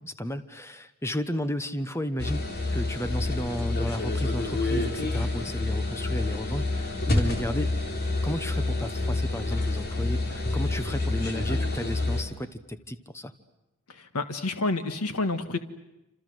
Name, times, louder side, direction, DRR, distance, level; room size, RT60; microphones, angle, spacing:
voice 1, 0.0-2.4 2.7-7.7 8.2-13.3, equal, 10° left, 11 dB, 1.1 m, -33 dB
sound 1, 2.2-12.2, left 2 dB, 45° left, 3.7 m, -28 dB
voice 2, 13.9-15.6, left 2 dB, 85° left, 8 dB, 1.7 m, -29 dB
28.0 x 27.0 x 7.9 m, 0.95 s
head